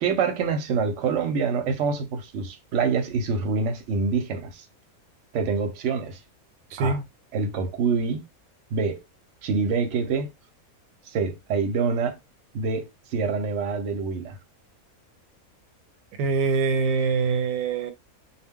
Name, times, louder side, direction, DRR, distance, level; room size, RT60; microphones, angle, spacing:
voice 1, 0.0-4.6 5.3-6.2 6.8-7.0 7.3-8.2 8.7-9.0 9.4-10.3 11.1-12.2 12.5-14.4, right 5 dB, 65° right, 0.9 m, -26 dB
voice 2, 6.7-7.0 16.2-17.9, right 4 dB, 90° right, 1.1 m, -24 dB
2.3 x 2.2 x 3.5 m
omnidirectional pair, 1.5 m